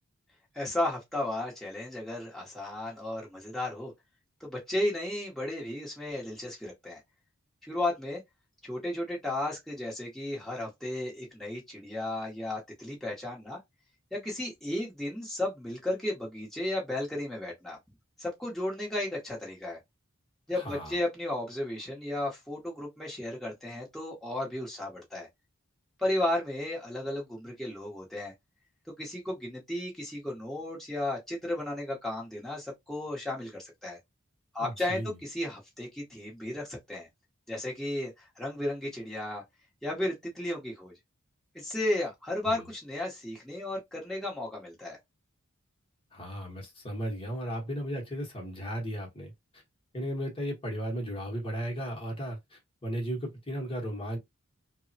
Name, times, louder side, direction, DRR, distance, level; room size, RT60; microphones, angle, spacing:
voice 1, 0.5-3.9 4.4-7.0 7.6-8.2 8.6-13.6 14.1-17.8 18.2-19.8 20.5-25.3 26.0-28.3 29.0-34.0 34.5-37.1 37.5-39.4 39.8-40.9 41.5-45.0, left 1 dB, ahead, 0.8 m, -34 dB
voice 2, 20.5-21.0 34.6-35.2 42.4-42.6 46.1-49.6 49.9-54.2, equal, 25° left, 0.9 m, -35 dB
3.3 x 2.1 x 2.6 m
head